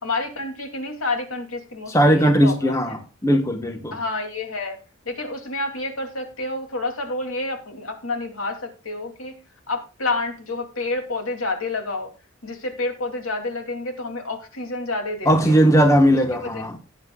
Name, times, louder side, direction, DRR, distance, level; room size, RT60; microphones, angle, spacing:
voice 1, 0.0-2.9 3.9-4.8 5.0-9.4 9.7-12.1 12.4-15.6 16.4-16.8, left 2 dB, 80° left, 2.7 m, -29 dB
voice 2, 1.9-4.0 15.2-16.8, equal, 15° left, 1.2 m, -18 dB
17.0 x 9.7 x 2.3 m
head